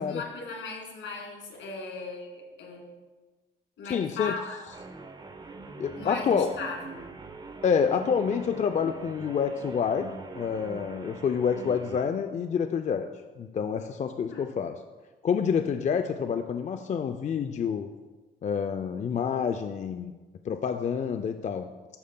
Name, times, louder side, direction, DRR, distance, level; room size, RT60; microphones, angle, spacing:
voice 1, 0.0-2.9 3.8-4.6 5.9-7.1 14.3-14.4, left 3 dB, 70° left, -1 dB, 2.3 m, -38 dB
voice 2, 3.9-4.4 5.8-6.5 7.6-10.1 10.4-13.1 13.4-14.7 15.2-17.9 18.4-20.1 20.4-21.7, left 7 dB, 35° left, 8 dB, 0.4 m, -28 dB
sound 1, 4.7-12.1, right 3 dB, 20° right, 0.6 m, -43 dB
12.5 x 6.3 x 2.2 m, 1.3 s
cardioid pair, 90°, 20 cm